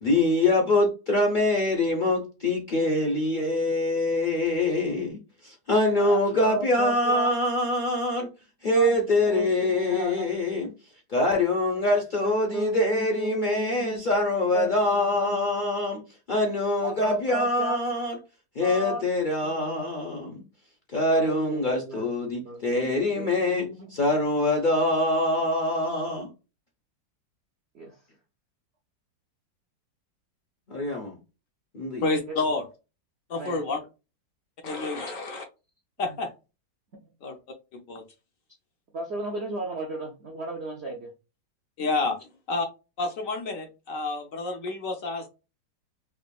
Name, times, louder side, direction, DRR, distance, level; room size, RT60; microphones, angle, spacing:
voice 1, 0.0-8.3 8.6-10.7 11.1-16.0 16.3-18.2 18.6-20.4 20.9-23.7 23.9-26.3 30.7-31.2 31.7-32.0, left 2 dB, 85° left, 0.4 m, -24 dB
voice 2, 6.0-7.3 8.7-10.3 11.7-15.6 16.8-18.1 18.6-19.0 19.4-20.2 21.1-24.0 27.7-28.0 32.3-32.4 33.3-33.6 36.0-36.2 37.0-37.1 38.9-41.1, right 1 dB, 65° right, 0.6 m, -36 dB
voice 3, 32.0-32.6 33.3-33.8 34.6-35.4 36.0-36.3 37.2-37.4 37.7-38.0 41.8-42.2 42.5-42.7 43.0-45.3, left 3 dB, 60° left, 0.9 m, -29 dB
4.9 x 2.6 x 2.2 m
omnidirectional pair, 2.0 m